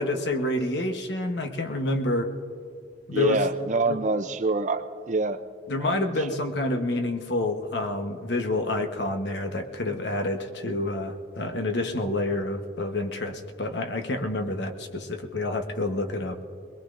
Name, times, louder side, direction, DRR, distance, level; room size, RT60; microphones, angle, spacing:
voice 1, 0.0-2.3 3.1-3.4 3.9-4.0 5.7-16.4, left 2 dB, 65° left, 5 dB, 1.1 m, -28 dB
voice 2, 3.1-5.4 5.8-6.1, right 3 dB, 40° right, 10 dB, 0.6 m, -26 dB
22.5 x 21.0 x 2.6 m, 2.3 s
head